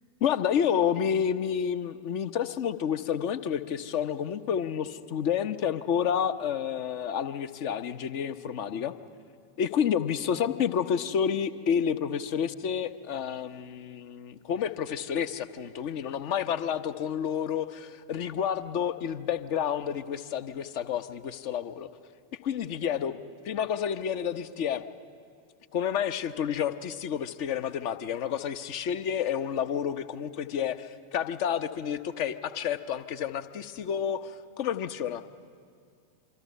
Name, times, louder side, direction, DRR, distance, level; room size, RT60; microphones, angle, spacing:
voice 1, 0.2-8.9 9.6-21.9 22.4-23.2 23.4-24.8 25.7-35.2, left 8 dB, 45° left, 11 dB, 1.0 m, -30 dB
26.0 x 24.5 x 5.5 m, 2.2 s
figure-of-eight pair, 90°, 0 cm